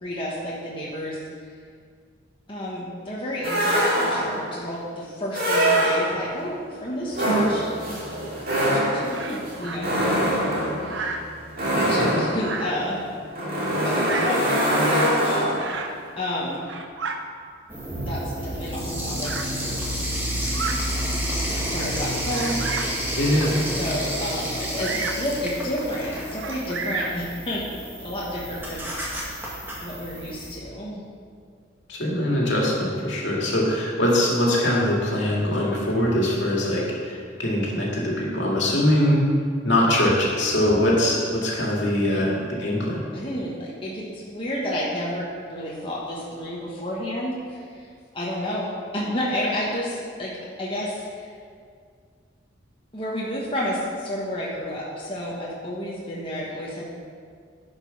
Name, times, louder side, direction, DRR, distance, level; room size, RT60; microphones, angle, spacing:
voice 1, 0.0-1.5 2.5-7.8 8.6-10.5 10.8-11.2 11.9-13.0 13.8-15.4 16.2-16.6 18.1-19.8 21.4-23.0 23.6-29.3 29.8-31.0 32.6-32.8 42.1-42.8 43.1-50.3 50.6-51.3 52.9-56.8, left 1 dB, 25° left, -6 dB, 1.3 m, -31 dB
sound 1, 3.4-4.5 5.3-6.4 7.1-15.8, right 1 dB, 50° right, 2.1 m, -23 dB
Bird vocalization bird call bird song, 9.1-9.8 10.8-11.3 12.3-12.9 13.9-14.5 15.6-16.0 16.5-17.2 18.1-18.2 19.2-19.5 20.4-20.8 21.4-21.5 22.3-23.0 24.8-25.3 26.4-27.2, right 4 dB, 65° right, 0.7 m, -32 dB
voice 2, 11.7-12.1 23.2-23.5 31.9-39.2 39.6-42.3 42.6-43.0, left 1 dB, 65° left, -4 dB, 2.2 m, -22 dB
sound 2, 17.7-30.5, equal, 10° right, 1.7 m, -30 dB
10.5 x 5.4 x 5.9 m, 2.1 s
head